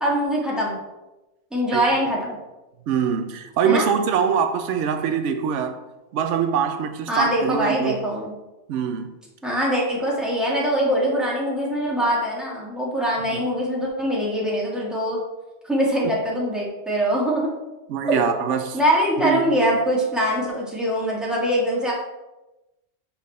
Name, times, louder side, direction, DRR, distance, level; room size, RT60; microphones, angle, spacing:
voice 1, 0.0-0.8 1.5-2.4 3.6-3.9 7.1-8.3 9.4-15.2 15.7-17.5 18.1-18.2 18.7-21.9, equal, ahead, -5 dB, 1.8 m, -23 dB
voice 2, 2.9-5.8 6.1-8.0 8.7-9.1 13.2-13.4 16.0-16.2 17.9-18.8 19.2-19.5, right 7 dB, 85° right, 7 dB, 0.9 m, -23 dB
5.9 x 5.6 x 4.2 m, 1.0 s
omnidirectional pair, 1.2 m